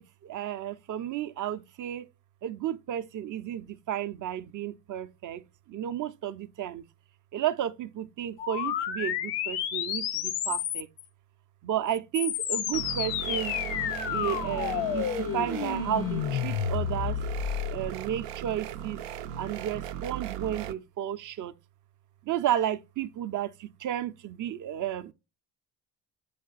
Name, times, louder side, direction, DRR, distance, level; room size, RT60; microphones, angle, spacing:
voice 1, 0.0-2.1 2.4-6.9 7.3-10.9 11.6-13.6 14.1-17.2 17.7-19.0 19.4-21.5 22.3-25.1, right 11 dB, 40° right, 0.5 m, -32 dB
sound 1, 8.4-11.0 11.9-17.9, left 10 dB, 80° left, 0.8 m, -31 dB
sound 2, 12.7-20.7, right 10 dB, 85° right, 0.6 m, -38 dB
sound 3, 13.2-17.7, left 2 dB, 30° left, 0.5 m, -44 dB
7.5 x 3.4 x 3.9 m
supercardioid pair, 70°, 49 cm